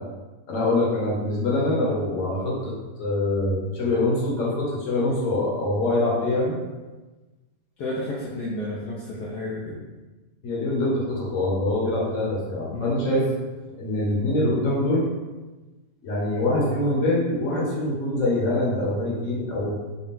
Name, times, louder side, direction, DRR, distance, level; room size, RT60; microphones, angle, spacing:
voice 1, 0.5-6.6 10.4-13.2 13.8-15.1 16.0-19.8, left 1 dB, 55° left, -5 dB, 1.3 m, -24 dB
voice 2, 7.8-9.8 12.7-13.0, left 1 dB, 75° left, -6 dB, 1.1 m, -31 dB
4.1 x 2.3 x 3.6 m, 1.2 s
omnidirectional pair, 1.8 m